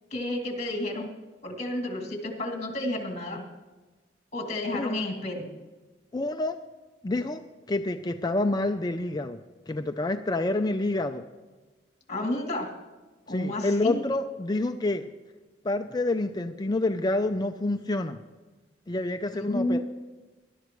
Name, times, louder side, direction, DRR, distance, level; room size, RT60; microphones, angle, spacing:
voice 1, 0.1-1.1 1.4-3.4 4.3-5.5 12.1-12.7 13.3-14.0 19.3-19.8, left 1 dB, 40° left, 2 dB, 2.5 m, -31 dB
voice 2, 6.1-6.6 7.0-7.4 7.7-9.4 9.7-11.2 13.3-15.0 15.6-18.2 18.9-19.8, left 2 dB, 20° left, 7 dB, 0.4 m, -28 dB
20.0 x 11.5 x 3.1 m, 1.2 s
head